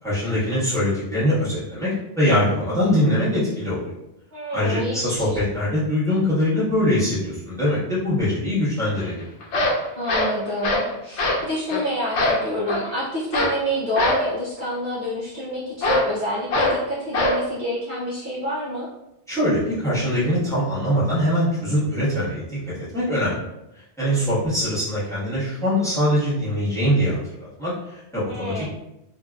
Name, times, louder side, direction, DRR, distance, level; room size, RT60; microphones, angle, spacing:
voice 1, 0.0-3.8 4.5-9.2 19.3-23.3 23.7-28.7, left 1 dB, 5° left, -11 dB, 1.2 m, -23 dB
voice 2, 4.3-5.4 10.0-18.9 28.3-28.7, equal, 50° right, -9 dB, 0.8 m, -28 dB
sound 1, 9.0-9.1 9.4-10.9 11.2-11.4 11.7-11.8 12.1-12.9 13.3-13.6 13.9-14.3 15.8-16.1 16.5-16.8 17.1-17.4, left 1 dB, 85° left, 0.9 m, -22 dB
2.8 x 2.5 x 2.3 m, 0.87 s
omnidirectional pair, 1.2 m